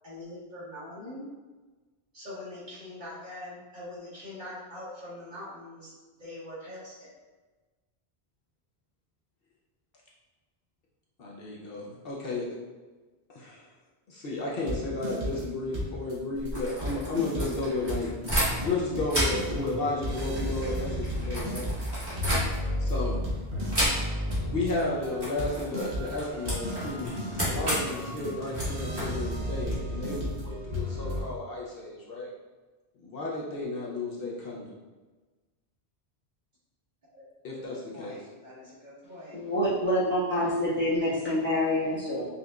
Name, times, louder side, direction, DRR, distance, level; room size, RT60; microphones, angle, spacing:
voice 1, 0.0-1.3 2.1-5.9 6.2-7.1 37.1-37.2 37.6-39.4, left 1 dB, 45° right, -10 dB, 1.5 m, -43 dB
voice 2, 11.2-12.6 13.3-13.7 14.1-18.1 18.6-21.7 22.8-23.2 24.5-32.3 33.0-34.7 37.4-38.2, left 2 dB, 65° left, -4 dB, 0.8 m, -33 dB
sound 1, 14.7-15.5 15.7-16.1 16.4-16.5 16.8-31.2, equal, 65° right, 1.2 m, -33 dB
sound 2, 16.3-18.8 19.1-22.9 23.7-24.4 24.6-24.9 25.2-29.8, equal, 20° right, 1.4 m, -32 dB
voice 3, 39.3-42.3, left 1 dB, 10° left, -11 dB, 1.1 m, -27 dB
5.2 x 2.5 x 2.2 m, 1.3 s
omnidirectional pair, 1.1 m